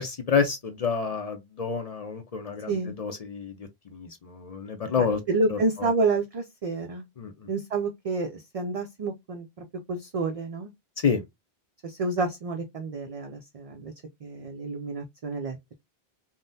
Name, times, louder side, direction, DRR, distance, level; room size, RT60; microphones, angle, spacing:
voice 1, 0.0-5.2 5.5-5.6 7.2-7.3 11.0-11.2, left 6 dB, 50° left, 0.5 m, -28 dB
voice 2, 5.0-7.0 7.5-10.7 11.8-13.9 14.2-15.6, right 3 dB, 55° right, 0.4 m, -29 dB
3.5 x 2.1 x 2.6 m
omnidirectional pair, 1.1 m